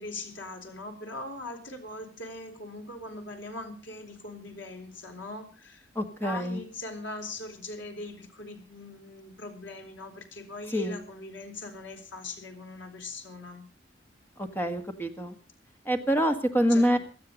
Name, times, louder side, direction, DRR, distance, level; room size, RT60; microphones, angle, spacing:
voice 1, 0.0-5.9 6.2-13.6 16.7-17.0, left 2 dB, 85° left, 4 dB, 3.7 m, -41 dB
voice 2, 5.9-6.6 10.7-11.0 14.4-15.3 15.8-17.0, equal, 10° left, 7 dB, 1.7 m, -26 dB
17.5 x 13.0 x 5.2 m, 0.36 s
head